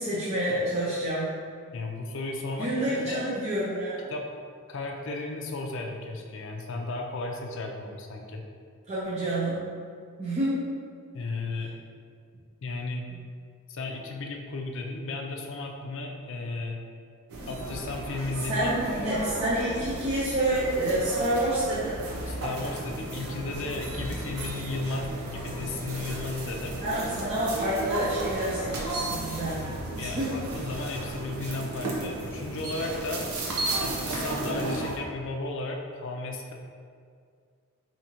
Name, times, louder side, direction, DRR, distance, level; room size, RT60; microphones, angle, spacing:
voice 1, 0.0-1.3 2.6-4.0 8.9-9.7 10.2-10.6 18.5-22.0 26.8-29.6 30.0-30.3, right 1 dB, 30° right, -10 dB, 0.7 m, -28 dB
voice 2, 1.7-3.3 4.1-4.2 4.7-8.4 11.1-11.7 12.6-13.0 13.7-16.8 17.5-18.7 22.3-26.8 29.6-33.2 33.8-36.5, left 2 dB, 60° left, 2 dB, 0.4 m, -34 dB
sound 1, 17.3-35.0, right 2 dB, 80° right, 0.7 m, -34 dB
4.8 x 2.8 x 2.8 m, 2.1 s
head